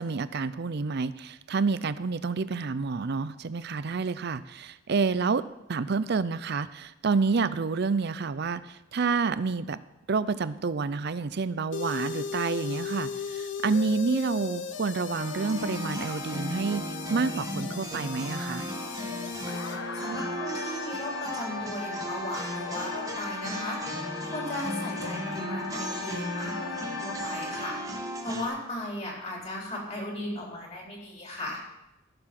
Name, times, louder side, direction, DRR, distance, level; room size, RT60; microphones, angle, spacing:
voice 1, 0.0-5.4 5.7-9.8 10.1-18.7, right 4 dB, 55° right, 15 dB, 0.5 m, -29 dB
sound 1, 11.7-27.7, left 6 dB, 65° left, 0.8 m, -38 dB
sound 2, 15.1-28.5, equal, 15° right, 1.5 m, -36 dB
voice 2, 19.9-28.0 28.2-31.6, left 1 dB, 35° left, -2 dB, 3.8 m, -37 dB
15.5 x 6.9 x 6.0 m, 0.92 s
head